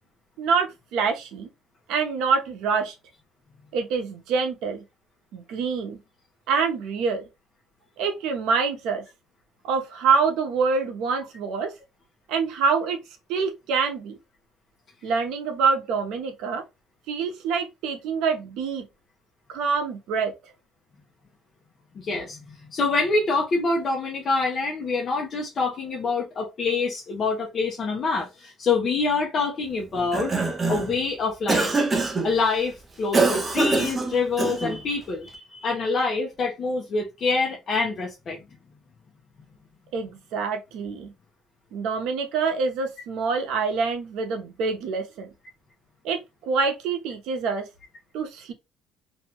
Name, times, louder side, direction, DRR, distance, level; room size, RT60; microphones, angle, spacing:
voice 1, 0.4-1.5 1.9-2.9 3.7-4.8 5.3-6.0 6.5-7.2 8.0-9.0 9.6-11.7 12.3-13.0 13.3-14.2 15.0-16.6 17.1-18.8 19.5-20.3 39.9-41.1 41.7-45.3 46.0-47.7 48.1-48.5, right 5 dB, 75° right, 0.7 m, -26 dB
voice 2, 22.0-30.3 30.7-31.7 32.2-38.4, left 3 dB, 35° left, 0.6 m, -26 dB
Cough, 29.9-31.0 31.5-32.3 33.1-34.8, right 3 dB, 20° right, 0.5 m, -24 dB
2.6 x 2.2 x 2.8 m
cardioid pair, 165°, 0 cm